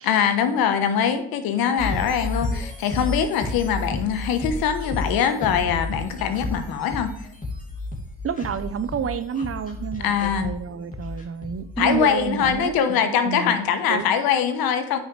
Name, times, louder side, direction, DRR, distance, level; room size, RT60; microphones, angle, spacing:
voice 1, 0.0-7.1 10.0-10.5 11.8-15.0, left 8 dB, 75° left, 8 dB, 1.2 m, -22 dB
sound 1, 1.8-12.7, left 2 dB, 20° left, 2.5 m, -32 dB
voice 2, 8.2-13.6 13.9-14.1, right 7 dB, 40° right, 13 dB, 0.8 m, -29 dB
9.3 x 6.2 x 3.3 m, 0.81 s
supercardioid pair, 70°, 36 cm